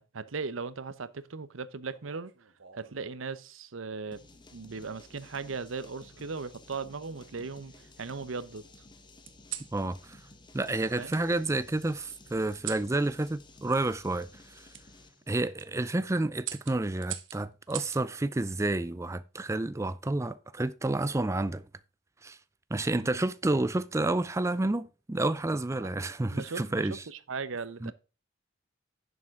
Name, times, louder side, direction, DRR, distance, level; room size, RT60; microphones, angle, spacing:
voice 1, 0.0-2.3 2.8-4.2 4.5-8.6 10.8-11.2 22.9-23.2 26.3-27.9, right 4 dB, 85° right, 0.8 m, -38 dB
sound 1, 1.9-3.0 4.0-4.5 5.7-6.5 7.1-8.0 9.3-9.8 11.1-11.2 12.5-12.9 14.7-14.9 15.4-15.7 16.4-18.0 19.5-19.9, right 12 dB, 65° right, 1.1 m, -43 dB
sound 2, 4.1-15.3, left 2 dB, 25° left, 1.3 m, -55 dB
voice 2, 9.7-10.2 10.5-14.3 15.3-21.6 22.2-22.4 22.7-27.0 27.8-27.9, right 2 dB, 15° right, 0.4 m, -30 dB
11.0 x 7.2 x 3.7 m
head